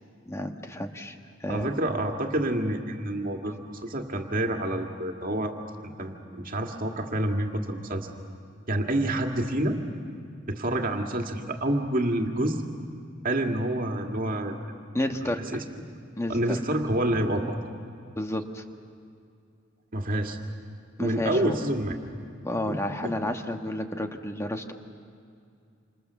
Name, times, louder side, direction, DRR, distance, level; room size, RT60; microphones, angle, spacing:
voice 1, 0.3-1.7 14.9-15.4 16.2-16.6 18.2-18.6 21.0-21.6 22.4-24.7, left 1 dB, 15° left, 5 dB, 1.4 m, -31 dB
voice 2, 1.5-5.5 6.0-8.1 8.7-9.8 10.5-12.6 13.2-14.6 15.5-15.8 16.3-17.5 19.9-20.4 21.0-21.9 22.7-23.1, right 1 dB, 45° right, 3 dB, 2.2 m, -28 dB
28.0 x 27.0 x 7.1 m, 2.4 s
head